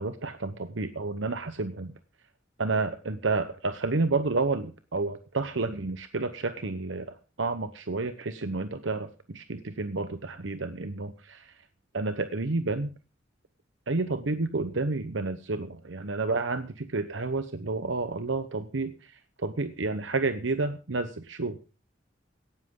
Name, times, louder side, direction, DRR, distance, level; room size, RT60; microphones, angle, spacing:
voice 1, 0.0-1.9 2.6-11.5 11.9-12.9 13.9-21.6, right 3 dB, 85° right, 10 dB, 1.0 m, -30 dB
17.5 x 13.5 x 3.8 m, 0.34 s
head